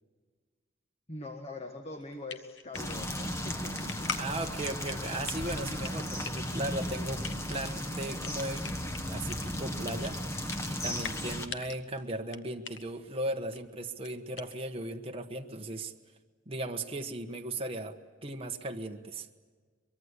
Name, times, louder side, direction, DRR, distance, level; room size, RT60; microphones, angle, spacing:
voice 1, 1.1-4.1, left 2 dB, 35° left, 5 dB, 1.5 m, -42 dB
sound 1, 2.0-14.9, left 6 dB, 70° left, 1.2 m, -45 dB
sound 2, 2.7-11.5, equal, 15° left, 1.4 m, -35 dB
voice 2, 4.2-8.7 9.1-10.2 10.6-15.9 16.5-19.3, right 1 dB, 30° right, 3 dB, 1.3 m, -37 dB
23.5 x 23.0 x 8.3 m, 1.5 s
head